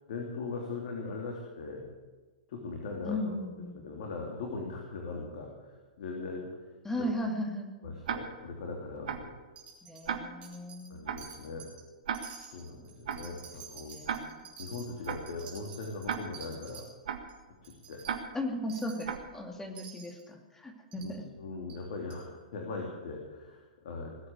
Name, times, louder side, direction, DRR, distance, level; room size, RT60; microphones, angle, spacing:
voice 1, 0.1-1.9 2.5-3.3 3.7-6.5 7.0-7.1 7.8-9.3 10.9-11.7 12.5-14.0 14.6-16.8 17.6-18.1 21.0-24.3, left 3 dB, 60° left, 0 dB, 3.1 m, -40 dB
voice 2, 3.0-3.9 6.8-7.7 9.8-11.0 13.8-14.4 18.3-21.3, left 1 dB, 10° left, 3 dB, 2.5 m, -36 dB
Tick-tock, 8.0-8.5 9.1-9.4 10.1-10.5 11.1-11.4 12.1-12.5 13.1-13.4 14.1-14.5 15.1-15.4 16.1-16.5 17.1-17.4 18.0-18.5 19.0-19.4, right 7 dB, 65° right, 1.7 m, -37 dB
Wind chime, 9.6-10.1 10.4-10.9 11.2-11.8 12.1-16.9 17.3-17.4 17.6-18.1 18.7-19.1 19.8-20.2 20.9-21.1 21.7-21.8 22.1-22.2, right 7 dB, 30° right, 4.7 m, -49 dB
20.0 x 8.6 x 8.2 m, 1.3 s
hypercardioid pair, 110°, 4 cm